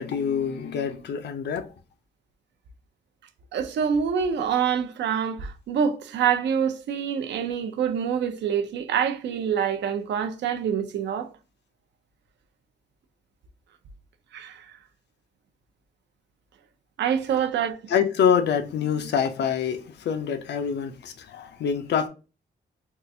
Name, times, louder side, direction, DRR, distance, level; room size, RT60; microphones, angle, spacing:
voice 1, 0.0-1.7 17.9-22.1, left 7 dB, 75° left, 0.5 m, -25 dB
voice 2, 3.5-11.3 14.3-14.7 17.0-17.8, right 7 dB, 90° right, 0.5 m, -26 dB
3.7 x 2.4 x 2.6 m
wide cardioid pair, 170°, 18 cm